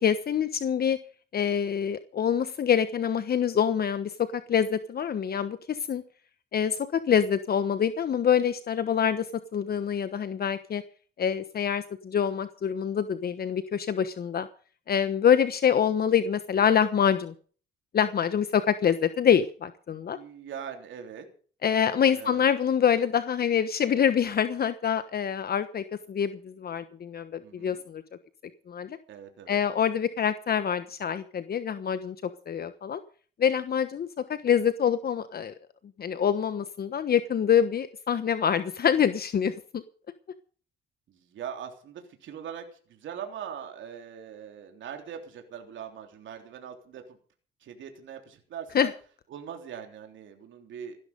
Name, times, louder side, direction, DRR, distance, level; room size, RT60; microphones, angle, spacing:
voice 1, 0.0-1.0 1.3-6.0 6.5-9.3 9.5-10.8 11.2-14.5 14.9-17.3 17.9-20.2 21.6-28.0 28.7-29.0 29.5-32.1 32.5-33.0 33.4-35.5 36.0-39.8 48.7-48.9, left 8 dB, 50° left, 11 dB, 1.2 m, -25 dB
voice 2, 20.1-21.3 22.1-22.5 27.4-27.8 29.1-29.6 41.1-47.2 47.6-48.9 49.3-51.0, right 8 dB, 75° right, 4 dB, 3.4 m, -41 dB
16.5 x 12.0 x 5.3 m, 0.42 s
cardioid pair, 90°, 20 cm